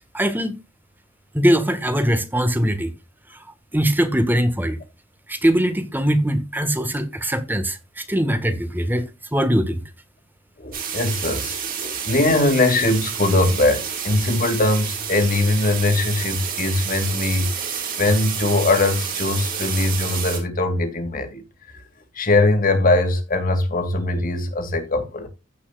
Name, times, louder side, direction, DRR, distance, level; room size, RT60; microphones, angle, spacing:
voice 1, 0.1-0.6 1.3-2.9 3.7-4.8 5.3-9.0 9.3-9.8, equal, 10° right, 1.6 m, -21 dB
voice 2, 10.6-17.5 18.0-21.4 22.2-25.3, left 2 dB, 45° left, 2.5 m, -21 dB
sound 1, 10.7-20.4, right 7 dB, 45° right, 4.3 m, -29 dB
16.0 x 5.7 x 2.4 m
head